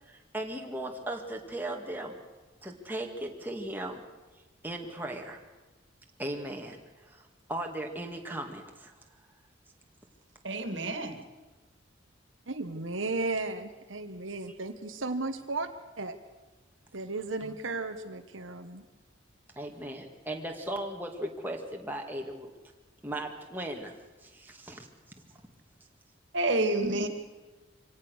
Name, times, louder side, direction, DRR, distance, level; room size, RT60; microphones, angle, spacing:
voice 1, 0.1-2.2 2.6-4.0 4.6-5.4 6.2-6.8 7.1-8.9 19.6-22.5 23.0-23.9 24.2-24.9, right 1 dB, 10° right, 1 dB, 2.2 m, -37 dB
voice 2, 10.4-11.2 26.3-27.1, right 2 dB, 65° right, 7 dB, 2.4 m, -28 dB
voice 3, 12.5-15.7 16.0-16.1 16.9-18.8, right 3 dB, 90° right, 5 dB, 1.6 m, -34 dB
25.0 x 17.5 x 6.5 m, 1.2 s
head